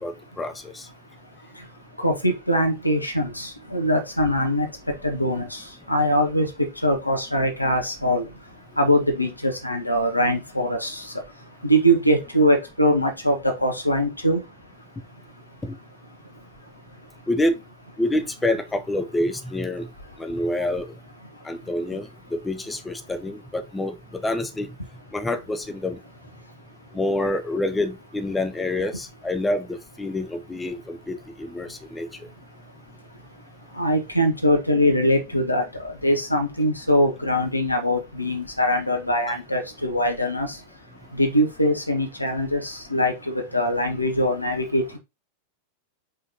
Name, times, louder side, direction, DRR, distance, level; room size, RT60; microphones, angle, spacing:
voice 1, 0.0-0.9 15.6-15.8 17.3-17.6 18.0-19.9 20.2-20.9 21.4-24.7 25.1-26.0 26.9-32.1, left 1 dB, 10° left, 0.5 m, -27 dB
voice 2, 2.0-4.7 5.0-5.6 5.9-6.5 6.8-8.3 8.8-11.0 11.6-13.4 13.6-14.4 33.8-35.6 36.0-40.5 41.2-45.0, equal, 85° left, 1.2 m, -22 dB
5.0 x 3.7 x 2.8 m
figure-of-eight pair, 90°, 0 cm